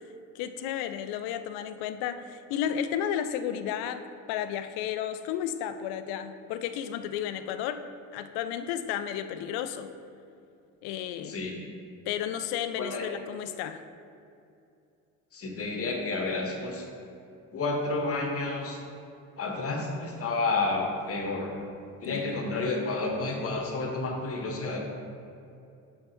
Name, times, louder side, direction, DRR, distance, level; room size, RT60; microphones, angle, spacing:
voice 1, 0.3-4.0 4.3-7.8 8.1-9.9 10.8-11.4 12.1-13.8 22.1-22.4, left 9 dB, 60° left, 11 dB, 0.5 m, -33 dB
voice 2, 12.8-13.1 15.3-16.8 17.5-18.8 19.4-21.5 22.0-24.8, left 3 dB, 35° left, 1 dB, 1.2 m, -30 dB
6.6 x 5.6 x 3.0 m, 2.5 s
hypercardioid pair, 70°, 42 cm